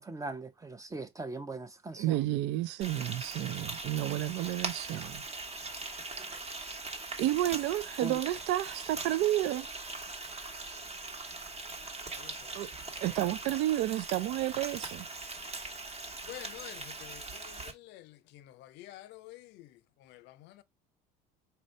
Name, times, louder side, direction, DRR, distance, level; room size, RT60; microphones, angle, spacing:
voice 1, 0.0-2.2 6.3-6.4 8.0-8.2, right 2 dB, 15° right, 0.6 m, -40 dB
voice 2, 2.0-5.2 7.2-9.7 12.5-12.7 13.0-15.1, right 14 dB, 65° right, 0.4 m, -31 dB
Frying (food), 2.8-17.7, right 3 dB, 35° right, 1.1 m, -41 dB
voice 3, 12.2-12.6 16.3-19.7 20.0-20.6, left 16 dB, 65° left, 0.5 m, -49 dB
4.3 x 2.6 x 3.1 m
supercardioid pair, 95°, 19 cm